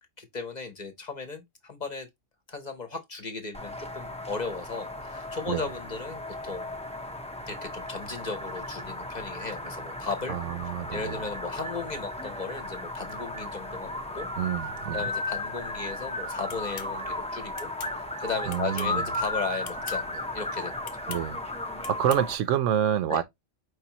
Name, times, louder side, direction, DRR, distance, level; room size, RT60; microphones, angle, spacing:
voice 1, 0.2-2.1 2.5-6.7 7.5-14.3 14.9-20.8 23.1-23.2, left 4 dB, 40° left, 0.9 m, -36 dB
sound 1, 3.5-22.3, left 2 dB, 10° left, 0.5 m, -35 dB
voice 2, 10.3-11.2 14.4-15.1 18.5-19.0 21.1-21.4 21.9-23.2, right 10 dB, 80° right, 0.9 m, -27 dB
sound 2, 16.5-16.9 17.6-17.9 18.5-19.0 19.6-20.0 20.8-21.2 21.8-22.2, left 8 dB, 80° left, 1.0 m, -42 dB
4.9 x 3.4 x 2.9 m
omnidirectional pair, 1.3 m